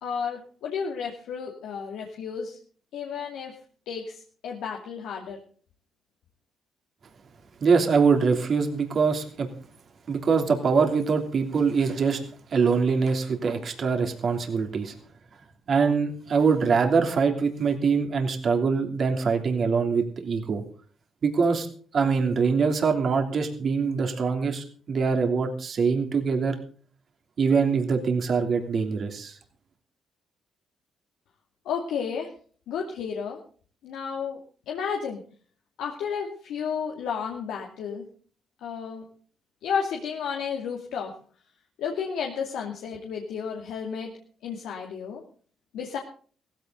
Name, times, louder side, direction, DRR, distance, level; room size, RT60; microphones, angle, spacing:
voice 1, 0.0-2.6 2.9-3.6 3.9-5.4 31.6-32.3 32.7-33.4 33.8-34.4 34.7-35.2 35.8-38.0 38.6-39.1 39.6-41.1 41.8-44.1 44.4-45.2 45.7-46.0, left 6 dB, 85° left, 0 dB, 2.4 m, -32 dB
voice 2, 7.6-9.5 10.1-12.2 12.5-14.9 15.7-20.6 21.2-21.7 21.9-26.6 27.4-29.4, right 5 dB, 50° right, 4 dB, 3.0 m, -23 dB
16.5 x 15.0 x 3.9 m, 0.43 s
cardioid pair, 90°, 0 cm